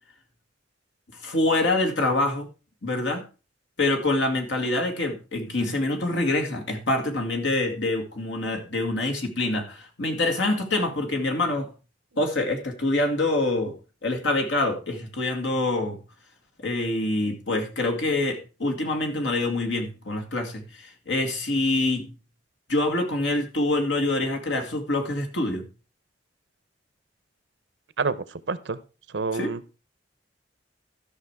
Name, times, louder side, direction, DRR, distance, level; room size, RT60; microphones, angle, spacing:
voice 1, 1.2-2.5 2.8-3.2 3.8-11.7 12.2-16.0 16.6-22.1 22.7-25.7 29.3-29.5, left 2 dB, 75° left, 3 dB, 2.2 m, -25 dB
voice 2, 28.5-28.8 29.1-29.6, right 4 dB, 70° right, 16 dB, 0.7 m, -27 dB
13.5 x 6.2 x 4.7 m, 0.33 s
head